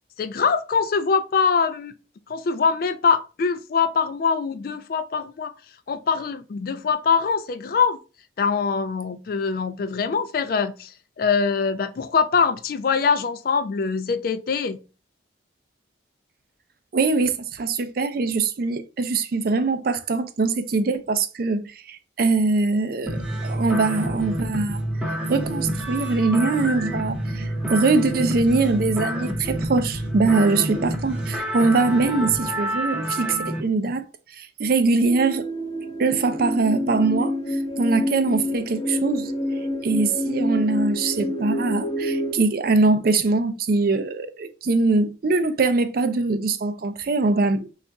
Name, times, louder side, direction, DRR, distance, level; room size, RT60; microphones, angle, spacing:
voice 1, 0.2-1.9 2.3-5.5 5.9-8.0 8.4-10.9 11.2-14.8, left 5 dB, 50° left, 0.3 m, -23 dB
voice 2, 16.9-24.8 25.3-34.0 34.3-35.5 36.0-39.3 39.8-47.7, right 3 dB, 50° right, 0.4 m, -22 dB
sound 1, 23.1-33.6, equal, 5° right, 0.6 m, -28 dB
sound 2, 35.0-42.4, left 1 dB, 30° left, 0.8 m, -27 dB
3.4 x 2.4 x 3.9 m
head